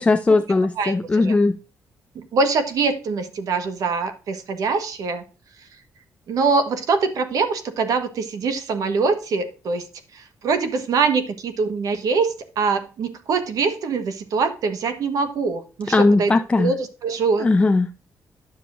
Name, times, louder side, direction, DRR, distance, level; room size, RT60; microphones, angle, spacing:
voice 1, 0.0-1.6 15.9-16.7 17.4-17.9, left 3 dB, 20° left, 0.4 m, -18 dB
voice 2, 0.8-1.4 2.1-5.2 6.3-9.9 10.1-17.5, right 4 dB, 70° right, 1.4 m, -23 dB
10.0 x 6.8 x 2.6 m
cardioid pair, 115°, 6 cm